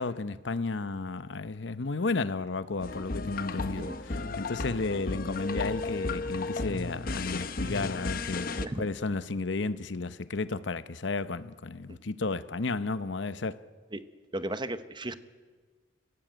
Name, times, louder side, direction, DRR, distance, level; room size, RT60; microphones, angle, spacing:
voice 1, 0.0-13.6, left 3 dB, 70° left, 0.8 m, -33 dB
sound 1, 2.8-8.7, left 3 dB, 50° left, 1.0 m, -34 dB
voice 2, 14.3-15.2, right 1 dB, 25° right, 1.0 m, -35 dB
29.0 x 16.5 x 9.0 m
head